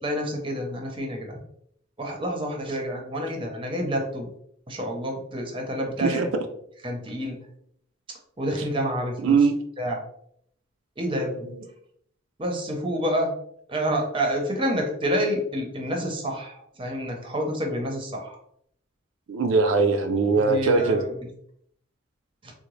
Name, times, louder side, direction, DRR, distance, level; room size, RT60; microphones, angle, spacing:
voice 1, 0.0-1.4 2.0-4.3 4.7-6.3 6.8-7.4 8.4-9.4 9.8-10.0 11.0-11.5 12.4-13.3 13.7-18.4 20.4-21.1 22.4-22.5, equal, 25° right, 2 dB, 0.6 m, -28 dB
voice 2, 9.2-9.5 11.0-11.6 19.3-21.0, right 4 dB, 75° right, 5 dB, 0.4 m, -22 dB
3.8 x 2.0 x 3.0 m, 0.69 s
head